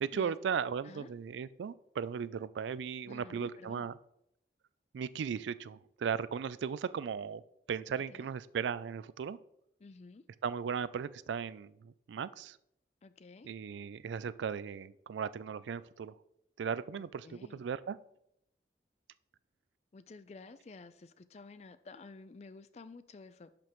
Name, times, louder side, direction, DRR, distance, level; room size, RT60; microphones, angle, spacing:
voice 1, 0.0-3.9 4.9-7.4 7.7-9.4 10.4-12.6 13.4-16.1 16.6-18.0, right 7 dB, 85° right, 16 dB, 0.3 m, -37 dB
voice 2, 3.0-3.9 8.1-8.3 9.8-10.2 13.0-13.5 17.2-17.7 19.9-23.5, left 3 dB, 35° left, 13 dB, 0.4 m, -52 dB
11.0 x 5.1 x 3.0 m, 0.76 s
head